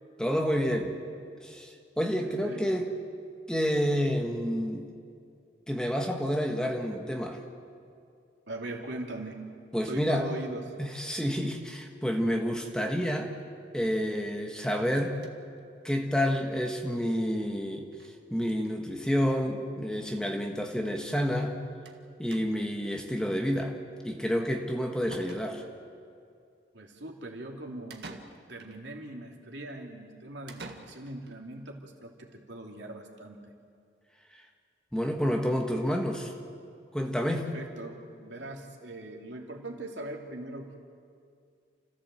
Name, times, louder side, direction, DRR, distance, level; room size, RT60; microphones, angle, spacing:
voice 1, 0.2-0.9 1.4-2.9 3.5-4.9 5.7-7.4 9.7-10.3 10.8-13.3 13.7-15.2 15.8-17.9 18.3-21.6 22.2-23.8 24.0-25.6 34.9-36.3 36.9-37.5, equal, 5° left, 2 dB, 1.5 m, -29 dB
voice 2, 2.2-2.8 8.5-9.5 9.8-10.8 26.7-28.2 28.5-33.4 37.3-40.7, right 1 dB, 85° right, 1 dB, 2.8 m, -41 dB
sound 1, 14.6-15.6 16.0-16.1 16.3-16.4 16.7-16.8 17.9-18.2 18.4-18.8 19.6-19.7 20.0-20.1 21.9-22.0 22.3-22.8 24.6-24.7 25.1-25.9 27.9-28.8 30.5-31.4, right 3 dB, 70° right, 1.7 m, -48 dB
29.5 x 14.5 x 7.6 m, 2.3 s
head